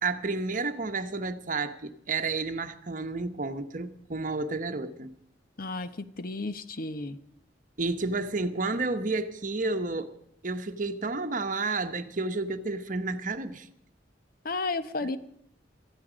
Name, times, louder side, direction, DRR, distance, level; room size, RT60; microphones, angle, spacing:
voice 1, 0.0-5.1 7.8-10.1 10.4-13.7, right 3 dB, 45° right, 1.0 m, -31 dB
voice 2, 5.6-7.2 14.4-15.2, left 3 dB, 50° left, 0.9 m, -33 dB
18.5 x 13.5 x 5.1 m
head